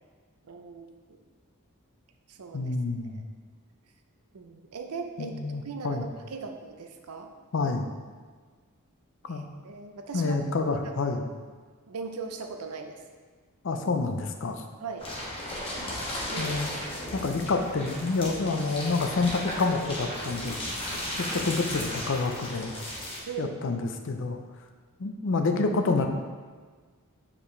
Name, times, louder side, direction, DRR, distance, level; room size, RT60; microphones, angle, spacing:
voice 1, 0.4-1.2 2.3-2.8 3.1-3.2 4.3-5.4 5.6-7.3 9.3-10.4 11.9-13.0 14.8-15.1 16.3-16.6 23.3-23.6, right 5 dB, 90° right, 5 dB, 0.6 m, -39 dB
voice 2, 2.5-3.2 5.2-6.1 7.5-7.9 9.3-9.5 10.1-11.3 13.6-14.6 16.4-16.7 17.1-20.6 21.3-22.8 23.4-24.4 25.0-26.1, left 3 dB, 60° left, 5 dB, 0.5 m, -28 dB
sound 1, 15.0-23.2, left 1 dB, 25° left, 1.2 m, -35 dB
7.0 x 4.9 x 3.2 m, 1.5 s
head